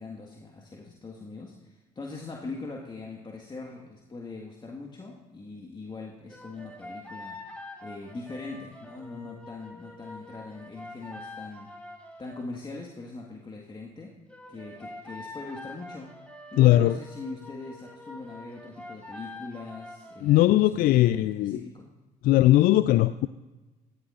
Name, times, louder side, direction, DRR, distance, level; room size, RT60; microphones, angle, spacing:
voice 1, 0.0-7.4 7.8-11.7 12.2-14.1 14.5-16.1 16.5-21.9, left 3 dB, 25° left, 0 dB, 1.7 m, -41 dB
sound 1, 6.3-12.5 14.3-20.5, left 2 dB, 5° left, 3.1 m, -45 dB
voice 2, 16.6-16.9 20.2-21.6 22.2-23.3, left 15 dB, 55° left, 15 dB, 0.4 m, -19 dB
18.0 x 14.5 x 2.5 m, 1.2 s
hypercardioid pair, 55°, 19 cm